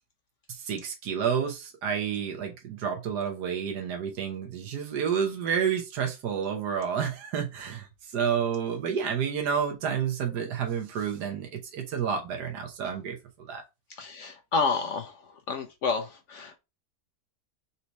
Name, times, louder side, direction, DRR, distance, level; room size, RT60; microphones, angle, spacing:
voice 1, 0.5-13.6, right 7 dB, 80° right, 1.5 m, -30 dB
voice 2, 13.9-16.6, left 4 dB, 60° left, 0.9 m, -30 dB
4.2 x 2.8 x 4.5 m
omnidirectional pair, 1.8 m